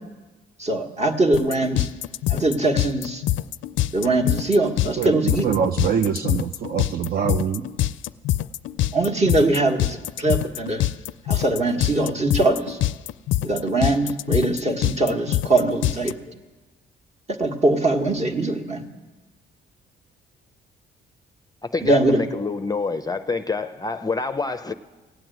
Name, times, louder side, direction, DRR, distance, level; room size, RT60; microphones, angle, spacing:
voice 1, 0.6-1.9 2.3-3.2 3.9-5.5 8.9-10.8 11.3-12.8 13.4-16.1 17.4-18.9 21.8-22.2, right 2 dB, 35° right, 4 dB, 1.5 m, -22 dB
sound 1, 1.3-16.1, left 14 dB, 75° left, 0.4 m, -24 dB
voice 2, 5.0-7.7, right 7 dB, 50° right, 7 dB, 0.6 m, -24 dB
voice 3, 21.6-24.7, left 4 dB, 20° left, 9 dB, 0.5 m, -27 dB
16.0 x 7.8 x 9.2 m, 1.2 s
cardioid pair, 90°, 20 cm